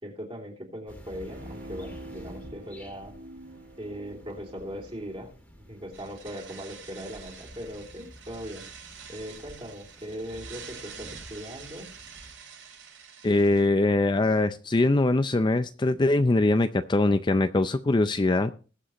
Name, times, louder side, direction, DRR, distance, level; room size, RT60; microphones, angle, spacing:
voice 1, 0.0-3.1 3.8-5.3 5.7-8.7 9.1-11.9, equal, 30° right, 3.3 m, -39 dB
sound 1, 0.9-12.3, equal, 10° left, 2.0 m, -50 dB
Bowed string instrument, 1.3-5.9 6.3-6.4, right 1 dB, 55° right, 5.0 m, -47 dB
sound 2, 5.9-13.7, right 7 dB, 90° right, 5.9 m, -47 dB
voice 2, 13.2-18.5, left 2 dB, 25° left, 0.4 m, -22 dB
20.5 x 7.5 x 3.0 m
head